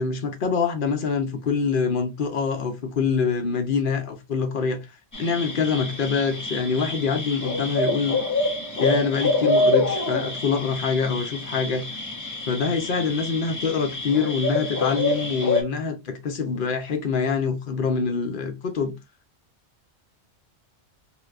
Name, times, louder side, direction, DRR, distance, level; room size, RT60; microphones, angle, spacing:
voice 1, 0.0-4.8 5.2-8.2 8.8-11.9 12.5-19.0, left 5 dB, 55° left, 0.8 m, -25 dB
sound 1, 5.1-15.6, left 2 dB, 25° left, 0.4 m, -26 dB
3.2 x 2.7 x 2.4 m
omnidirectional pair, 1.2 m